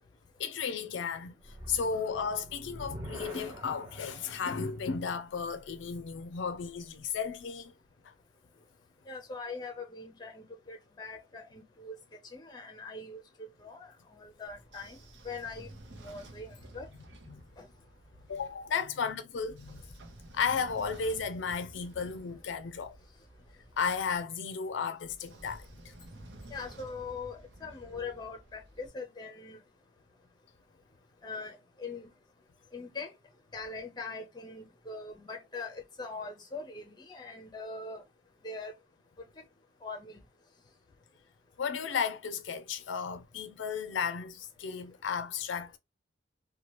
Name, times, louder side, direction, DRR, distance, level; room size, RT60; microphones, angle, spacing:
voice 1, 0.4-7.7 8.0-8.1 17.3-17.4 18.3-19.8 20.3-22.9 23.8-25.9 41.6-45.8, left 6 dB, 70° left, 0.4 m, -34 dB
sound 1, 1.4-6.7, right 1 dB, 20° right, 0.9 m, -47 dB
voice 2, 9.1-12.0 12.2-15.0 15.2-15.7 16.0-16.9 17.6-17.7 26.5-29.6 31.2-32.1 32.7-33.1 33.5-38.0 38.4-38.7 39.2-39.4 39.8-40.2, left 3 dB, 20° left, 0.6 m, -42 dB
Train / Sliding door, 14.5-18.5 19.3-24.2 25.0-28.9, right 1 dB, 65° right, 0.7 m, -52 dB
2.9 x 2.2 x 3.0 m
head